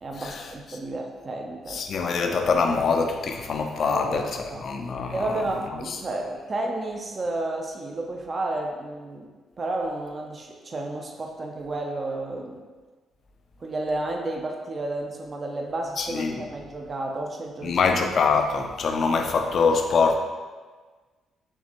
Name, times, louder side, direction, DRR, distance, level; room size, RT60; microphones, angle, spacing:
voice 1, 0.0-1.8 3.8-4.6 5.1-9.3 9.6-12.6 13.6-17.8, right 2 dB, 40° right, 1 dB, 0.5 m, -32 dB
voice 2, 1.7-5.4 16.0-16.4 17.6-20.2, left 4 dB, 60° left, 4 dB, 0.5 m, -24 dB
4.5 x 3.2 x 2.9 m, 1.4 s
supercardioid pair, 60°, 0 cm